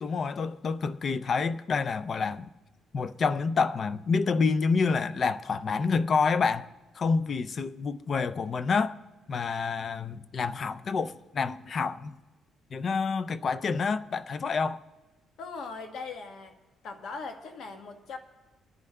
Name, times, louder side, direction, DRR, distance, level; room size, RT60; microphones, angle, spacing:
voice 1, 0.0-2.5 2.9-6.7 7.0-9.0 9.3-12.2 12.7-14.8, left 5 dB, 50° left, 0.4 m, -28 dB
voice 2, 15.4-16.6 16.8-18.2, left 4 dB, 70° left, 1.3 m, -40 dB
28.5 x 11.0 x 2.2 m
cardioid pair, 90°, 0 cm